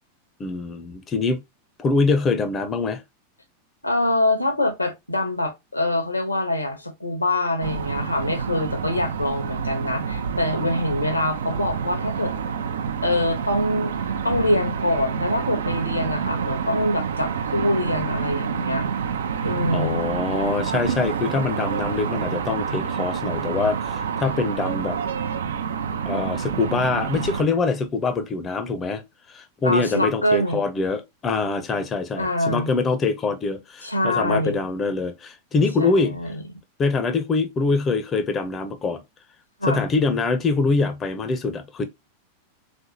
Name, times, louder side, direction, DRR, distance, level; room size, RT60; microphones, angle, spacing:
voice 1, 0.4-1.4 1.8-3.0 19.7-25.0 26.1-29.0 29.3-36.2 36.8-39.0 39.7-41.8, left 4 dB, 25° left, 0.6 m, -24 dB
voice 2, 3.8-12.3 13.0-18.9 19.4-20.1 29.6-30.6 32.2-32.7 33.8-34.6 35.8-36.3 39.6-39.8, left 1 dB, 85° left, 1.1 m, -24 dB
sound 1, 7.6-27.4, right 7 dB, 65° right, 0.6 m, -28 dB
3.8 x 3.3 x 2.8 m
figure-of-eight pair, 90°, 0 cm